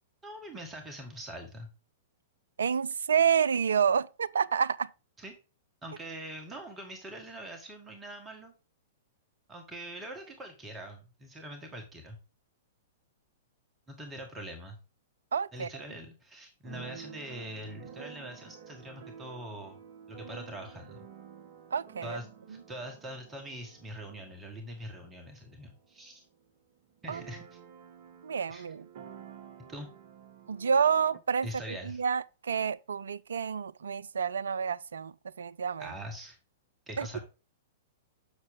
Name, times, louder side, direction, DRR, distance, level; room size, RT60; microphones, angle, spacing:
voice 1, 0.2-1.7 5.2-5.3 5.8-8.5 9.5-12.2 13.9-14.8 15.5-19.8 20.1-21.1 22.0-26.2 27.0-27.6 28.5-28.7 29.7-29.9 31.4-32.0 35.8-36.4 36.9-37.2, right 1 dB, 15° right, 1.6 m, -43 dB
voice 2, 2.6-4.9 15.3-15.7 21.7-22.2 27.1-27.2 28.2-28.8 30.5-35.9 37.0-37.2, right 7 dB, 65° right, 0.3 m, -29 dB
Keyboard (musical), 16.6-26.2 26.5-26.6 26.8-31.2, right 8 dB, 45° right, 0.8 m, -50 dB
7.3 x 6.3 x 3.6 m
figure-of-eight pair, 105°, 0 cm